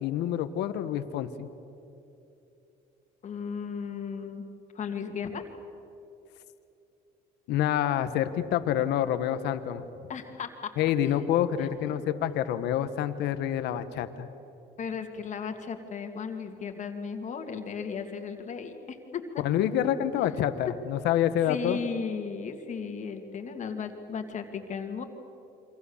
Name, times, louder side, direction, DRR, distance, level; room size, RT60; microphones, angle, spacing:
voice 1, 0.0-1.5 7.5-9.8 10.8-14.3 19.4-21.8, left 10 dB, 85° left, 11 dB, 1.3 m, -27 dB
voice 2, 3.2-4.5 4.7-5.4 10.1-10.7 11.6-12.0 14.8-19.4 20.2-20.4 21.4-25.0, left 6 dB, 45° left, 5 dB, 2.3 m, -36 dB
28.0 x 25.0 x 7.2 m, 2.8 s
cardioid pair, 110°, 17 cm